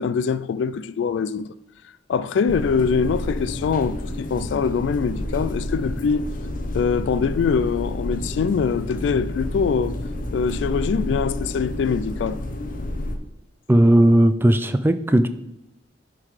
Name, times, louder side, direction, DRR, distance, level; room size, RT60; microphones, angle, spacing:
voice 1, 0.0-1.5 2.1-6.3 6.7-10.0 10.3-12.4, left 6 dB, 70° left, 0.3 m, -23 dB
sound 1, 2.5-13.2, left 1 dB, 45° left, 0.8 m, -30 dB
voice 2, 13.7-15.3, right 1 dB, 10° right, 0.4 m, -16 dB
10.5 x 3.8 x 4.9 m
head